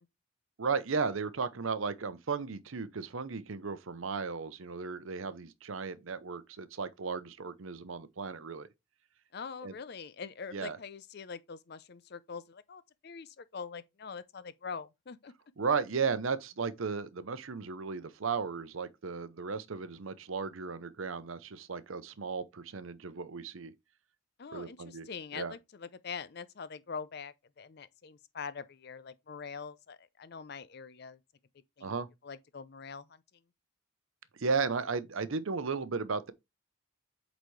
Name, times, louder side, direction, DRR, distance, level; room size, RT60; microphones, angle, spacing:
voice 1, 0.6-8.7 9.6-9.7 10.5-10.8 15.6-23.7 24.5-25.1 25.3-25.5 31.8-32.1 34.4-36.3, right 5 dB, 75° right, 0.7 m, -35 dB
voice 2, 9.3-15.3 24.4-31.2 31.8-32.0 32.2-33.2, left 5 dB, 50° left, 0.5 m, -44 dB
8.1 x 4.0 x 3.2 m
head